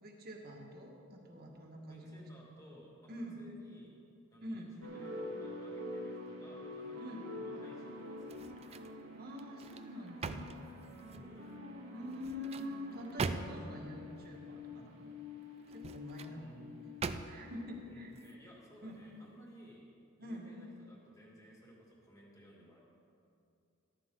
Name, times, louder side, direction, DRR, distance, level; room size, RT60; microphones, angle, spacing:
voice 1, 0.0-2.3 3.1-3.4 4.4-4.7 7.0-7.3 9.1-10.6 11.9-15.1 15.7-16.5 17.2-18.1 18.8-18.9 20.2-20.5, left 1 dB, 50° right, 0 dB, 1.7 m, -45 dB
voice 2, 1.9-3.1 3.4-4.0 4.3-8.8 11.1-11.5 16.3-16.9 17.8-19.9 20.2-22.8, equal, 15° left, -3 dB, 2.3 m, -58 dB
sound 1, 4.8-18.2, left 2 dB, 80° right, 2.0 m, -47 dB
sound 2, 8.2-9.0 9.4-11.3 12.1-13.8 15.6-16.4 17.0-17.6 18.1-18.3, right 4 dB, 30° right, 0.4 m, -42 dB
14.0 x 13.0 x 3.8 m, 2.6 s
head